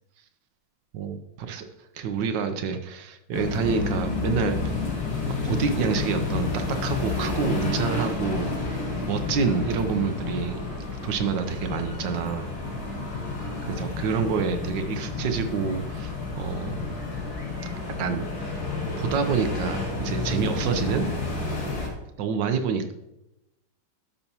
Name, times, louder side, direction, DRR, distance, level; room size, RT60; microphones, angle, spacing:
voice 1, 0.9-1.7 1.9-4.6 5.3-8.5 9.1-10.7 11.0-12.5 13.6-16.9 18.0-18.3 19.0-21.1 22.2-22.9, right 6 dB, 75° right, 7 dB, 1.3 m, -27 dB
sound 1, 3.3-21.9, left 4 dB, 75° left, 2.8 m, -30 dB
12.5 x 5.7 x 2.8 m, 0.91 s
omnidirectional pair, 2.0 m